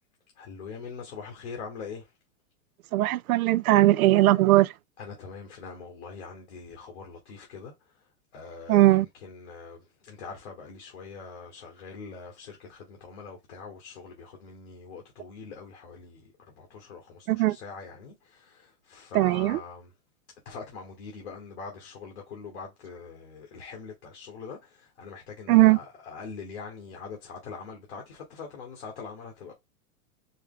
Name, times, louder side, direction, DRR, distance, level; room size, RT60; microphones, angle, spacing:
voice 1, 0.4-2.1 5.0-7.7 8.3-19.9 20.4-29.5, left 5 dB, 50° left, 1.4 m, -43 dB
voice 2, 2.9-4.7 8.7-9.1 17.3-17.6 19.1-19.6 25.5-25.8, right 17 dB, 80° right, 0.5 m, -19 dB
4.5 x 2.1 x 3.7 m
supercardioid pair, 170°, 42 cm